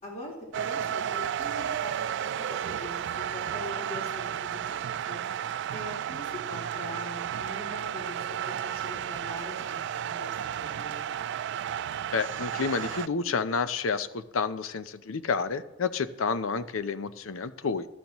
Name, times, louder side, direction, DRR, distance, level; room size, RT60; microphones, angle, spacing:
voice 1, 0.0-5.2 5.7-11.0, left 1 dB, 35° left, -3 dB, 3.9 m, -42 dB
sound 1, 0.5-13.1, right 9 dB, 60° right, 0.3 m, -33 dB
voice 2, 12.1-17.9, left 5 dB, 90° left, 13 dB, 0.6 m, -30 dB
15.0 x 12.0 x 3.0 m, 1.0 s
head